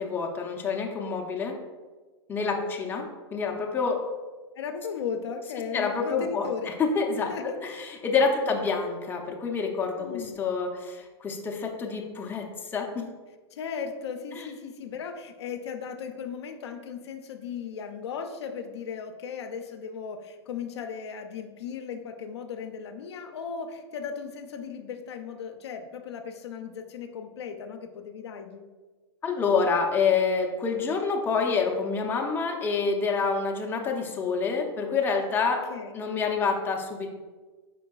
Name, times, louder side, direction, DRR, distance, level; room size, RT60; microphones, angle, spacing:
voice 1, 0.0-1.5 2.3-3.0 3.3-4.0 5.7-7.3 7.6-13.1 14.3-14.5 29.2-35.7 35.9-37.1, left 5 dB, 15° left, 1 dB, 0.5 m, -27 dB
voice 2, 2.4-2.7 4.6-6.7 7.3-7.6 8.3-8.5 10.0-10.4 13.5-28.6 35.7-36.0, left 6 dB, 75° left, 6 dB, 0.5 m, -36 dB
4.4 x 3.8 x 2.3 m, 1.3 s
hypercardioid pair, 120°, 14 cm